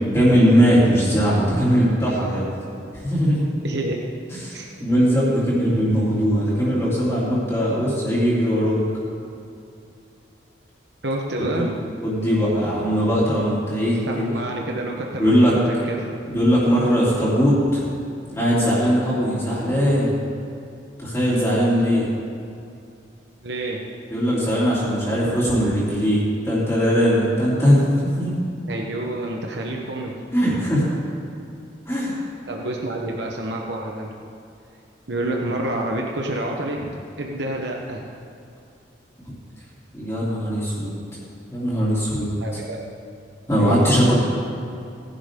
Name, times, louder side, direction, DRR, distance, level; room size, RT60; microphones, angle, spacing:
voice 1, 0.1-2.5 3.0-3.5 4.3-8.8 11.6-11.7 12.0-14.4 15.1-15.5 16.3-17.8 18.3-20.1 21.0-22.0 24.1-28.3 30.3-30.9 31.9-32.1 39.3-39.4 39.9-40.9 41.5-42.3 43.5-44.1, equal, 15° left, -9 dB, 3.0 m, -20 dB
voice 2, 3.6-4.0 4.5-4.7 5.0-5.1 11.0-11.7 14.0-16.1 23.4-23.8 28.7-30.2 32.5-34.1 35.1-36.8 37.2-38.0 42.4-42.9 43.6-43.8, right 1 dB, 70° right, 0 dB, 1.1 m, -28 dB
18.5 x 11.0 x 3.8 m, 2.5 s
head